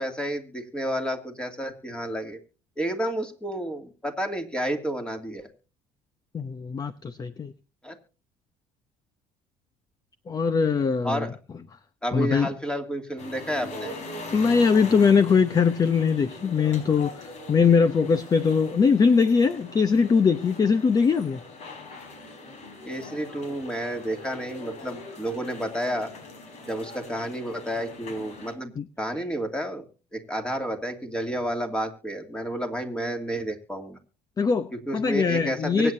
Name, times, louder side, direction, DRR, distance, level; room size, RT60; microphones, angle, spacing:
voice 1, 0.0-2.4 2.8-5.5 7.8-8.0 11.0-11.3 12.0-13.9 22.8-26.1 26.6-29.8 30.1-34.0 34.9-35.9, right 1 dB, 5° left, 2.6 m, -31 dB
voice 2, 6.3-7.5 10.3-11.3 12.1-12.5 14.3-21.4 28.8-28.9 34.4-35.9, left 5 dB, 25° left, 0.8 m, -21 dB
sound 1, 13.2-28.5, left 2 dB, 55° left, 5.0 m, -41 dB
24.0 x 8.9 x 2.7 m
cardioid pair, 120°, 14 cm